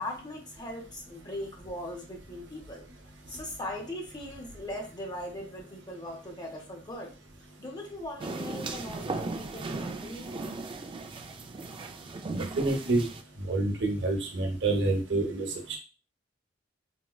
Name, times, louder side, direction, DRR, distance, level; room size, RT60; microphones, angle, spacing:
voice 1, 0.0-2.8 3.3-7.1 7.6-10.3, left 1 dB, 25° left, 1 dB, 0.6 m, -39 dB
sound 1, 8.2-13.2, right 3 dB, 30° right, 0.3 m, -37 dB
voice 2, 12.3-13.1 13.4-15.8, right 2 dB, 70° right, 2 dB, 0.8 m, -28 dB
4.3 x 2.1 x 2.3 m, 0.33 s
head